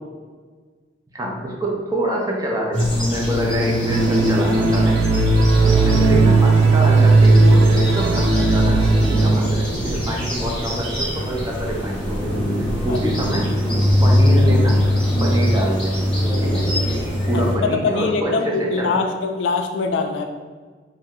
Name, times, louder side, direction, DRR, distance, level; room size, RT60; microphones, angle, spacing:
voice 1, 1.1-5.1 5.6-13.5 14.0-14.8 15.2-16.0 16.4-16.6 17.3-19.0, right 1 dB, 20° right, -2 dB, 0.5 m, -26 dB
sound 1, 2.7-17.5, right 1 dB, 5° left, 0.9 m, -19 dB
sound 2, 3.9-9.3, right 1 dB, 80° right, 0.3 m, -20 dB
voice 2, 17.6-20.3, left 4 dB, 75° left, 4 dB, 0.3 m, -23 dB
2.7 x 2.1 x 3.6 m, 1.5 s
head